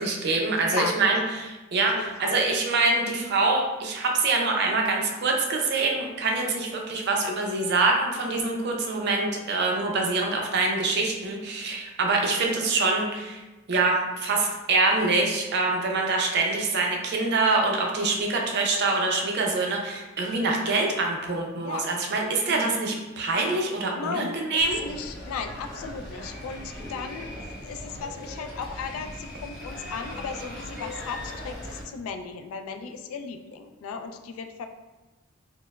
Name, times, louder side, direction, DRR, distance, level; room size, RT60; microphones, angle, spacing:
voice 1, 0.0-13.4 13.7-24.8, right 3 dB, 50° right, 1 dB, 0.5 m, -25 dB
voice 2, 1.9-2.4 21.6-21.9 22.5-22.6 24.0-27.3 27.6-34.7, left 5 dB, 80° left, 9 dB, 0.3 m, -36 dB
sound 1, 24.6-31.8, left 1 dB, ahead, 0.9 m, -39 dB
4.2 x 2.0 x 2.2 m, 1.1 s
head